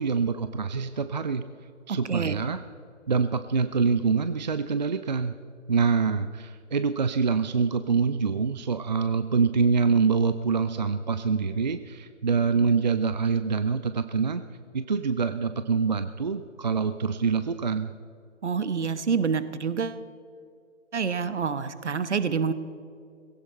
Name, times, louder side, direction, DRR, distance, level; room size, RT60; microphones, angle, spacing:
voice 1, 0.0-1.4 1.9-2.6 3.1-5.4 5.7-14.4 14.7-17.9, right 5 dB, 35° right, 11 dB, 0.4 m, -25 dB
voice 2, 1.9-2.3 18.4-20.0 20.9-22.5, right 6 dB, 60° right, 13 dB, 1.1 m, -27 dB
19.0 x 16.5 x 4.3 m, 2.3 s
figure-of-eight pair, 135°, 38 cm